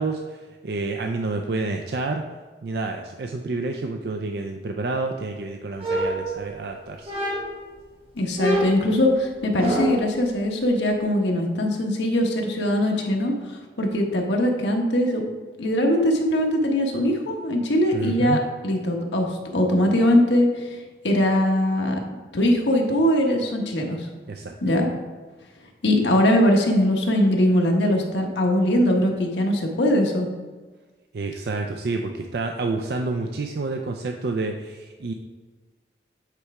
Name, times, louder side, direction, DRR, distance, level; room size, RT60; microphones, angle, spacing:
voice 1, 0.0-2.2 2.6-7.1 17.9-18.4 24.3-24.6 31.1-35.1, right 3 dB, 60° right, 3 dB, 0.4 m, -29 dB
sound 1, 5.8-6.7 7.1-7.7 8.4-10.1, equal, 30° right, 1.2 m, -26 dB
voice 2, 8.2-15.2 15.6-20.8 21.0-22.0 22.3-24.1 24.6-24.9 25.8-30.3, left 1 dB, 85° left, 1 dB, 1.1 m, -21 dB
8.2 x 3.3 x 4.8 m, 1.3 s
head